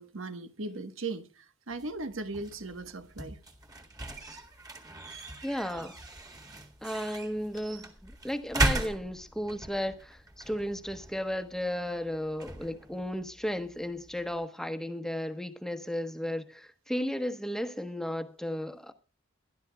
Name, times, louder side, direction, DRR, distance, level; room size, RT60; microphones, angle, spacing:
voice 1, 0.0-3.4, right 3 dB, 80° right, 1.4 m, -38 dB
sound 1, 1.7-14.5, right 2 dB, 20° right, 1.9 m, -38 dB
voice 2, 5.4-6.0 6.8-18.9, equal, ahead, 1.1 m, -34 dB
22.5 x 12.5 x 2.3 m
head